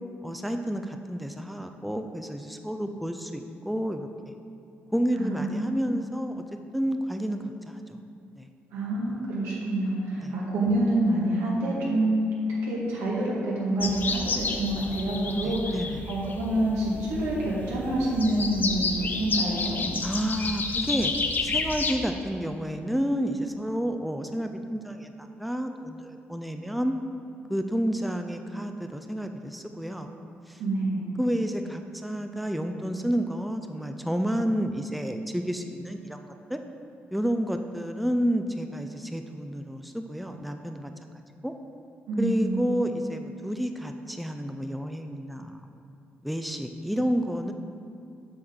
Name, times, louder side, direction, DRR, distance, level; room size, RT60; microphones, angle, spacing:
voice 1, 0.2-4.3 4.9-6.4 6.7-8.0 8.4-8.5 10.2-10.3 15.4-16.0 20.0-21.1 21.4-26.9 27.5-30.1 30.5-30.6 31.2-36.6 37.1-41.1 41.4-41.5 42.2-45.6 46.2-47.5, equal, ahead, 5 dB, 0.5 m, -30 dB
voice 2, 5.2-5.7 8.7-12.3 12.6-19.8 30.6-31.1 42.1-42.6, right 1 dB, 90° right, -5 dB, 1.9 m, -27 dB
sound 1, 13.8-21.9, left 3 dB, 45° left, 0.7 m, -31 dB
7.8 x 6.0 x 3.8 m, 2.6 s
supercardioid pair, 65°, 5 cm